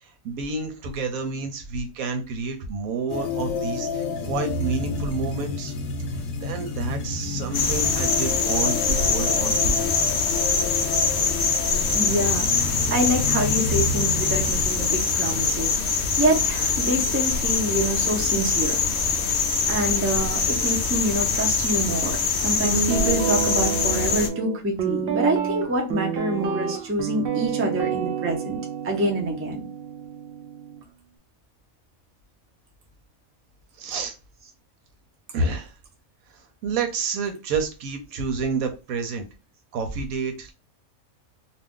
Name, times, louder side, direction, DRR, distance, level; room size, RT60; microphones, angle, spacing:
voice 1, 0.0-5.7 6.4-9.8 33.8-34.1 35.3-35.7 36.3-39.2 39.7-40.5, right 4 dB, 80° right, 6 dB, 1.1 m, -29 dB
sound 1, 3.1-14.6, left 3 dB, 80° left, 1.0 m, -30 dB
sound 2, 7.5-24.3, left 5 dB, 65° left, 0.8 m, -24 dB
voice 2, 11.9-15.8 16.2-18.8 19.7-28.6 28.8-29.6, right 1 dB, 20° right, 0 dB, 0.3 m, -26 dB
Guitar, 22.6-30.8, right 7 dB, 65° right, 0.6 m, -28 dB
2.5 x 2.3 x 3.5 m, 0.30 s
omnidirectional pair, 1.5 m